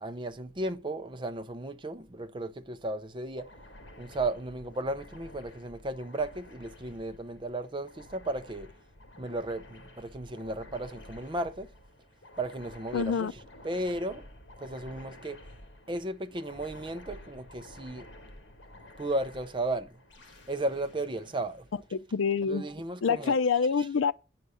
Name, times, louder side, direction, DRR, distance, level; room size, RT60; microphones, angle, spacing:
voice 1, 0.0-3.4 4.0-8.7 9.2-11.7 12.4-13.3 13.6-14.2 14.6-15.4 15.9-18.0 19.0-19.9 20.5-21.6 22.5-23.4, right 2 dB, 25° right, 0.7 m, -34 dB
sound 1, 3.4-22.2, left 1 dB, 60° left, 1.9 m, -51 dB
voice 2, 12.9-13.3 21.9-22.7 23.0-24.1, left 5 dB, 90° left, 0.5 m, -26 dB
9.3 x 4.8 x 5.6 m
head